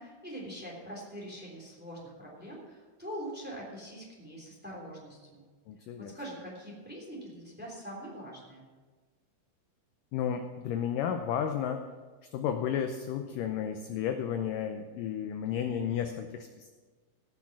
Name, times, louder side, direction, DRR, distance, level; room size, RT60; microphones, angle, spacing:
voice 1, 0.0-5.4 6.0-8.6, equal, 5° right, -3 dB, 2.7 m, -43 dB
voice 2, 5.7-6.1 10.1-11.9 12.3-16.7, left 8 dB, 80° left, 6 dB, 2.0 m, -32 dB
18.0 x 6.2 x 6.1 m, 1.4 s
omnidirectional pair, 4.5 m